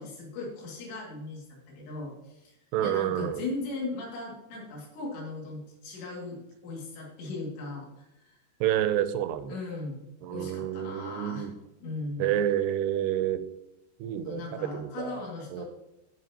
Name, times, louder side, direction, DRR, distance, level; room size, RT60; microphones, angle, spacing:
voice 1, 0.0-1.4 1.7-7.9 8.2-8.4 9.5-10.1 10.3-11.5 11.8-12.4 14.2-15.7, left 3 dB, 80° left, -3 dB, 4.6 m, -38 dB
voice 2, 2.7-3.4 8.6-9.6 10.2-11.5 12.2-13.4 14.0-14.4 14.7-15.1 15.5-15.7, right 11 dB, 80° right, 11 dB, 2.6 m, -28 dB
16.5 x 5.7 x 2.9 m, 0.93 s
omnidirectional pair, 5.0 m